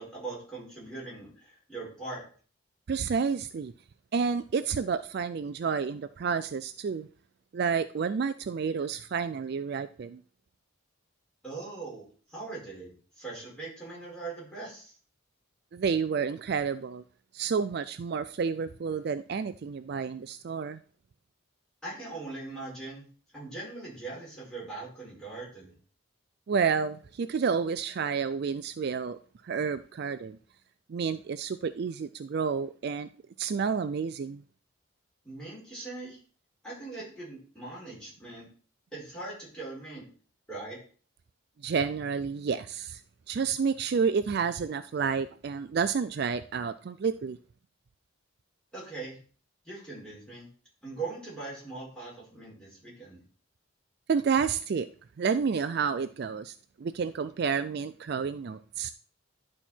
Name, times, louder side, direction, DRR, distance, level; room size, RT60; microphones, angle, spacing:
voice 1, 0.0-2.2 11.4-14.9 21.8-23.0 23.3-25.7 35.2-36.2 36.6-38.5 38.9-40.1 40.5-40.8 48.7-49.2 49.6-50.5 50.8-53.2, right 3 dB, 5° left, 4.9 m, -41 dB
voice 2, 2.9-3.7 4.1-7.1 7.5-10.2 15.7-17.0 17.3-20.8 26.5-29.2 29.4-30.4 30.9-33.1 33.4-34.4 41.6-43.0 43.3-47.4 54.1-54.9 55.2-58.9, right 6 dB, 50° right, 0.3 m, -30 dB
11.0 x 4.3 x 4.4 m
head